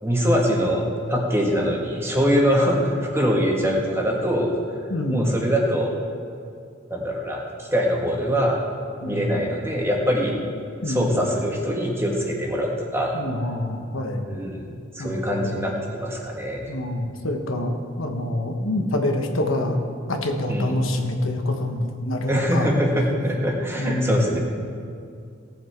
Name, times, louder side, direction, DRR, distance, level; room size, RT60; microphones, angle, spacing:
voice 1, 0.0-4.5 5.1-5.9 6.9-8.7 9.0-10.4 10.9-13.2 14.3-14.7 14.9-16.8 20.5-20.7 22.3-24.4, equal, 15° right, -1 dB, 1.6 m, -23 dB
voice 2, 4.9-5.4 9.0-9.5 10.8-11.1 13.1-14.2 15.0-15.7 16.7-19.8 20.1-22.7 23.8-24.3, left 1 dB, 85° left, 3 dB, 1.3 m, -26 dB
17.0 x 7.2 x 4.6 m, 2.4 s
head